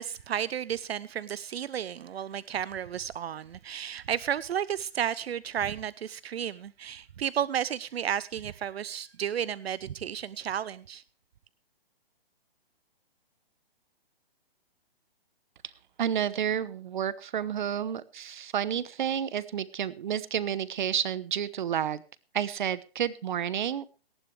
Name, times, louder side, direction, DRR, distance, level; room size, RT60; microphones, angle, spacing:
voice 1, 0.0-11.0, right 9 dB, 80° right, 0.6 m, -32 dB
voice 2, 16.0-22.0 22.3-24.0, right 9 dB, 50° right, 1.0 m, -30 dB
18.5 x 13.0 x 3.3 m
hypercardioid pair, 165°, 30 cm